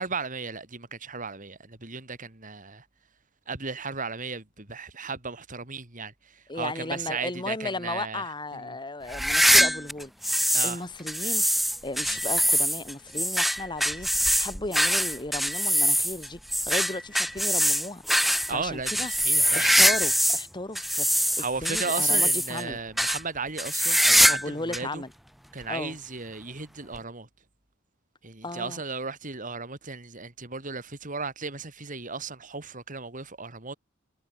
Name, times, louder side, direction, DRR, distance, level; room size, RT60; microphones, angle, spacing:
voice 1, 0.0-2.8 3.5-8.8 10.5-10.8 18.5-19.9 21.4-25.0 25.5-27.3 28.2-33.7, right 4 dB, 40° right, 3.3 m, -35 dB
voice 2, 6.5-11.4 11.8-16.4 16.7-18.0 18.3-19.1 19.5-22.8 24.3-25.1 25.7-26.0 28.4-28.8, left 2 dB, 20° left, 2.8 m, -35 dB
sound 1, 9.1-10.8 11.1-20.5 20.8-22.6 23.0-23.2 23.6-24.5 24.7-24.8 25.6-25.7 26.9-27.0, equal, ahead, 1.1 m, -23 dB
head